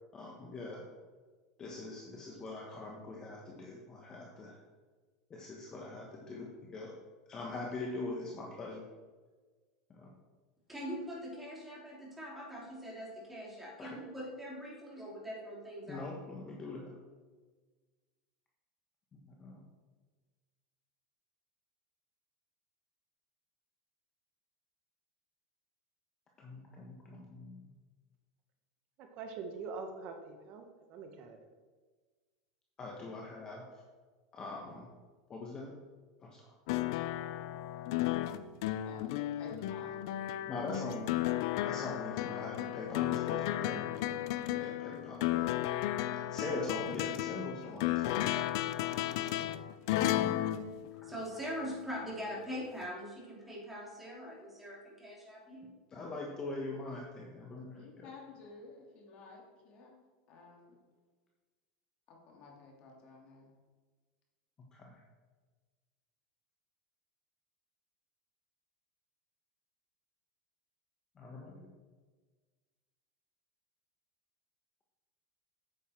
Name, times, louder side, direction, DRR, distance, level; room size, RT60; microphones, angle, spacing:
voice 1, 0.1-0.8 1.6-4.6 5.3-6.9 7.3-8.8 9.9-10.1 13.8-14.0 15.9-17.0 19.3-19.6 26.4-27.7 32.8-33.6 34.3-34.9 35.3-35.7 36.2-36.5 40.5-41.2 41.6-43.9 44.5-45.5 46.1-48.7 50.1-50.3 55.9-58.1 64.7-65.0 71.2-71.7, left 2 dB, 25° left, -1 dB, 1.3 m, -42 dB
voice 2, 10.7-16.1 51.0-55.7, equal, 5° right, -4 dB, 3.1 m, -42 dB
voice 3, 29.0-31.4, right 4 dB, 45° right, 5 dB, 1.1 m, -44 dB
sound 1, 36.7-51.6 52.8-52.9, left 14 dB, 65° left, 0.5 m, -34 dB
voice 4, 38.8-40.1 57.7-60.0 60.3-60.8 62.1-63.5, left 4 dB, 45° left, -1 dB, 2.7 m, -53 dB
8.6 x 8.1 x 4.4 m, 1.4 s
supercardioid pair, 140°, 3 cm